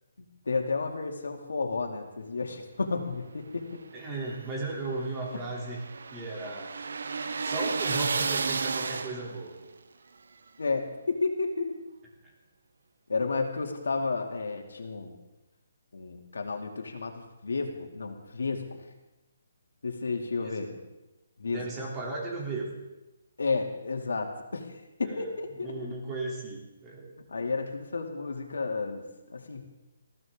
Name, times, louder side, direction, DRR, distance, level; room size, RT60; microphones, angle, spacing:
voice 1, 0.5-3.8 10.6-11.7 13.1-15.1 15.9-18.7 19.8-20.7 21.4-21.7 23.4-25.8 27.3-29.6, left 4 dB, 90° left, 3 dB, 2.5 m, -32 dB
voice 2, 3.9-5.8 6.1-6.7 7.4-9.6 12.2-12.3 20.4-20.8 21.5-22.7 25.0-25.3 25.6-27.2, right 2 dB, 15° right, -3 dB, 3.1 m, -36 dB
sound 1, 4.0-9.5, right 4 dB, 70° right, 1.0 m, -32 dB
20.5 x 15.5 x 3.8 m, 1.0 s
hypercardioid pair, 170°, 0 cm